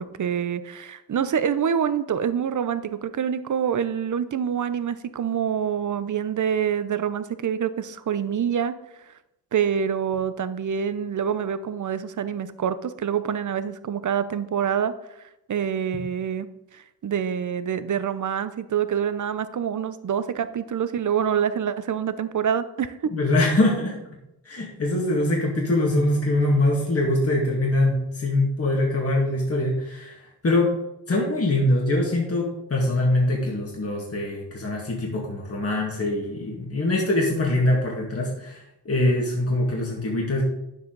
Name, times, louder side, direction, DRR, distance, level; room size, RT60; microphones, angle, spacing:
voice 1, 0.0-8.8 9.5-14.9 15.5-16.5 16.7-22.9, right 8 dB, 50° right, 12 dB, 0.8 m, -26 dB
voice 2, 23.1-24.0 24.5-30.2 30.4-30.8 31.1-40.4, left 1 dB, 35° left, -2 dB, 2.1 m, -23 dB
9.5 x 7.4 x 4.0 m, 0.87 s
cardioid pair, 90°, 40 cm